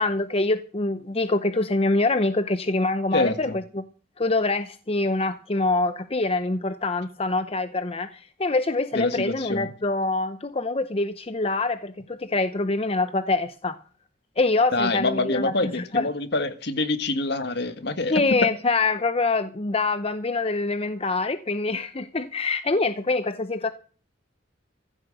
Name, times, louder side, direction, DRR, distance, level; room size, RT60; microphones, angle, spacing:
voice 1, 0.0-3.8 4.2-13.8 14.4-16.0 18.1-23.7, left 3 dB, 30° left, 0.8 m, -25 dB
voice 2, 3.1-3.6 8.9-9.7 14.7-18.5, left 2 dB, 60° left, 1.8 m, -26 dB
15.5 x 7.5 x 7.8 m
head